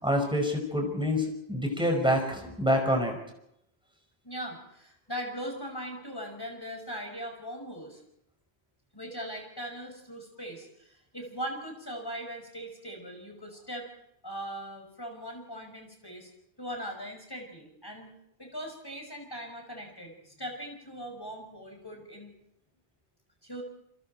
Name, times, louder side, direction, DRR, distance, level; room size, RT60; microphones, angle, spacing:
voice 1, 0.0-3.2, equal, 5° right, 2 dB, 5.2 m, -27 dB
voice 2, 4.2-8.0 8.9-13.9 14.2-16.3 16.6-18.1 18.4-22.3 23.4-23.6, equal, 20° left, 2 dB, 5.9 m, -40 dB
29.0 x 23.0 x 4.4 m, 0.78 s
omnidirectional pair, 1.1 m